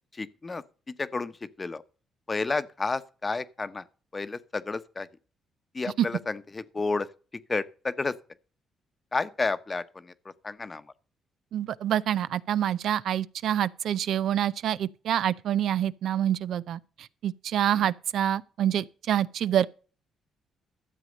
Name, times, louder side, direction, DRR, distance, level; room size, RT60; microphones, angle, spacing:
voice 1, 0.1-1.3 1.6-1.8 2.3-3.8 4.1-5.1 5.7-7.1 7.5-8.2 9.1-10.8 17.7-17.9, left 3 dB, 25° left, 0.9 m, -31 dB
voice 2, 11.5-19.7, right 10 dB, 75° right, 0.6 m, -27 dB
13.0 x 7.6 x 5.2 m
cardioid pair, 90°, 0 cm